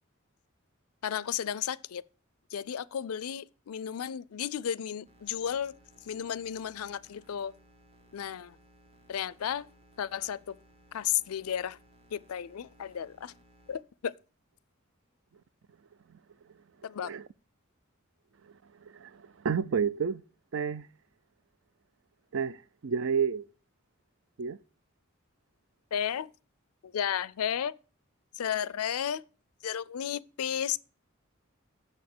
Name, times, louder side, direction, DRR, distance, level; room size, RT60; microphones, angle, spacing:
voice 1, 1.0-2.0 2.5-5.7 6.0-7.5 8.1-8.6 9.1-9.7 10.0-10.6 10.9-11.8 12.1-13.3 13.7-14.1 16.8-17.1 25.9-26.3 26.8-27.8 28.3-29.2 29.6-30.8, left 9 dB, 90° left, 0.4 m, -33 dB
sound 1, 5.0-13.8, equal, 25° right, 1.1 m, -61 dB
voice 2, 18.8-20.2 20.5-20.9 22.3-23.4 24.4-24.6, right 6 dB, 60° right, 0.4 m, -30 dB
7.2 x 6.5 x 6.0 m
head